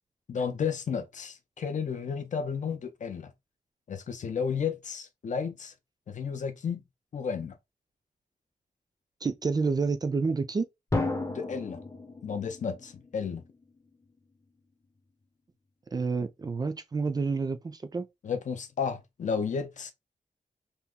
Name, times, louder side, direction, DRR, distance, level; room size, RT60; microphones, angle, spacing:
voice 1, 0.3-3.3 3.9-5.7 6.1-6.8 7.1-7.6 11.3-11.8 12.2-13.4 18.2-19.9, left 6 dB, 65° left, 0.5 m, -32 dB
voice 2, 9.2-10.7 15.9-18.1, right 4 dB, 30° right, 0.3 m, -29 dB
Drum, 10.9-13.6, left 2 dB, 20° left, 0.6 m, -33 dB
2.8 x 2.3 x 3.6 m
wide cardioid pair, 170°, 14 cm